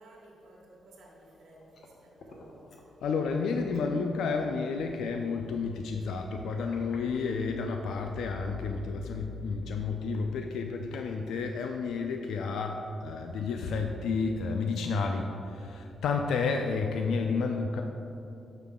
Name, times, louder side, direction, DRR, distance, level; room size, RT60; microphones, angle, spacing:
voice 1, 0.0-2.8, right 1 dB, 80° right, -2 dB, 1.1 m, -55 dB
sound 1, 1.1-2.9 3.2-3.3 3.6-3.9 4.5-4.6 5.8-7.9, left 2 dB, 70° left, 0.9 m, -54 dB
voice 2, 3.0-17.8, left 4 dB, 85° left, 4 dB, 0.4 m, -31 dB
6.7 x 5.7 x 3.6 m, 2.7 s
cardioid pair, 105°, 0 cm